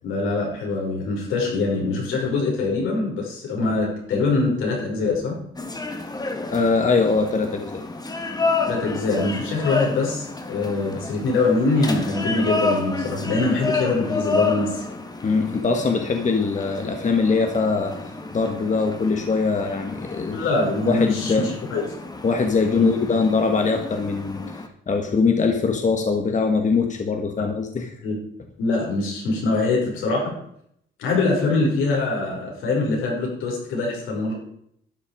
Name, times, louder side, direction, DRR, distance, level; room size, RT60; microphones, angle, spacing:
voice 1, 0.0-5.4 8.6-14.9 20.3-21.8 22.7-22.9 28.0-28.2 28.6-30.3 31.0-34.3, left 3 dB, 85° left, -2 dB, 6.2 m, -23 dB
sound 1, 5.6-24.7, left 3 dB, 20° left, 1.8 m, -30 dB
voice 2, 6.5-7.8 15.2-17.9 18.3-20.4 20.8-21.5 22.2-24.4 24.9-27.9, left 4 dB, 40° left, 4 dB, 1.7 m, -22 dB
12.5 x 9.1 x 5.2 m, 0.69 s
cardioid pair, 90°, 20 cm